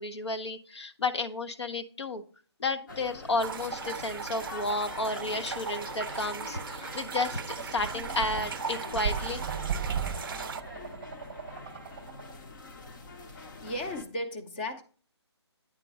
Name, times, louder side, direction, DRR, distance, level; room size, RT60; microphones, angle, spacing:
voice 1, 0.0-2.2 2.6-9.4, left 2 dB, 70° left, 1.0 m, -32 dB
sound 1, 2.9-14.0, left 3 dB, 45° left, 1.0 m, -45 dB
sound 2, 3.4-10.6, right 6 dB, 50° right, 0.4 m, -38 dB
sound 3, 7.8-12.3, right 7 dB, 30° right, 0.8 m, -36 dB
voice 2, 13.3-14.8, left 1 dB, 20° left, 0.7 m, -36 dB
9.1 x 3.9 x 4.8 m
figure-of-eight pair, 160°, 15 cm